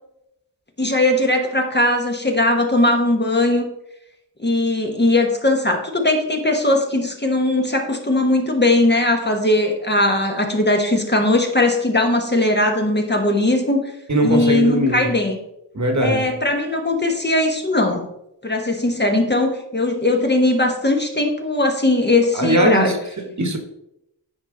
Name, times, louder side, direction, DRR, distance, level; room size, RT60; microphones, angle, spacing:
voice 1, 0.8-3.7 4.4-13.8 14.2-15.4 16.0-18.1 18.4-22.9, left 2 dB, 25° left, 3 dB, 1.0 m, -19 dB
voice 2, 14.1-15.1 15.7-16.3 22.3-23.6, right 1 dB, 40° right, 4 dB, 1.3 m, -20 dB
9.7 x 4.6 x 3.8 m, 0.83 s
wide cardioid pair, 75°, 43 cm